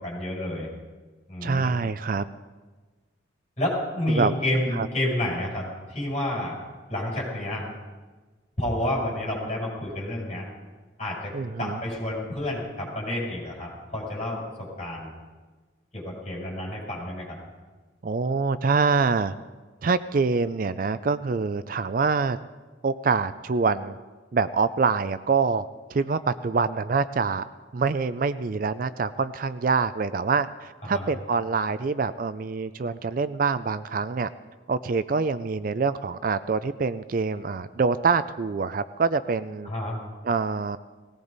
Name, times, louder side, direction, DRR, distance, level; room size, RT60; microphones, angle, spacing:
voice 1, 0.0-0.7 1.3-1.7 3.6-6.6 6.9-7.6 8.6-10.5 11.0-15.1 15.9-17.4 30.9-31.1 39.6-40.0, left 1 dB, 35° left, -5 dB, 7.0 m, -29 dB
voice 2, 1.4-2.2 4.1-4.3 4.7-4.9 11.3-11.8 18.0-19.3 19.8-22.4 22.8-24.0 24.3-27.4 27.7-34.3 34.7-39.7 40.2-40.8, right 4 dB, 45° right, 13 dB, 0.4 m, -25 dB
19.0 x 18.0 x 4.0 m, 1.3 s
head